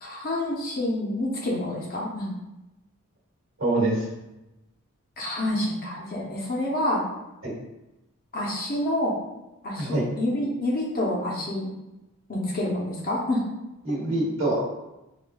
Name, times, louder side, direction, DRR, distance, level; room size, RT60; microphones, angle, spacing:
voice 1, 0.0-2.3 5.2-7.0 8.3-9.1 9.6-11.7 12.3-13.4, left 1 dB, 40° left, -3 dB, 0.7 m, -28 dB
voice 2, 3.6-4.0 7.4-7.5 9.8-10.0 13.8-14.6, right 2 dB, 60° right, -4 dB, 1.1 m, -25 dB
4.8 x 2.2 x 2.2 m, 0.98 s
head